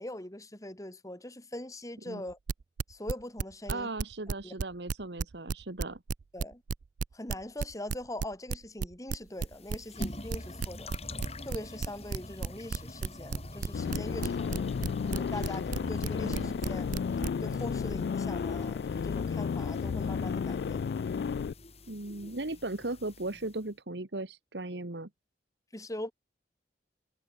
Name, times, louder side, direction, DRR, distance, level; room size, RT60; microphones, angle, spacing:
voice 1, 0.0-2.4 2.9-3.9 4.4-4.5 6.3-6.6 7.1-10.9 11.4-14.7 15.1-16.9 17.4-20.9 25.7-26.1, left 1 dB, 20° left, 2.4 m, -42 dB
sound 1, 2.3-4.6 4.9-17.5, right 5 dB, 45° right, 0.3 m, -33 dB
voice 2, 3.7-6.0 16.2-16.5 21.9-25.1, right 2 dB, 75° right, 1.7 m, -37 dB
sink emptying, 9.3-23.6, left 1 dB, 35° left, 7.0 m, -45 dB
sound 2, 13.7-21.5, left 6 dB, 65° left, 0.3 m, -32 dB
head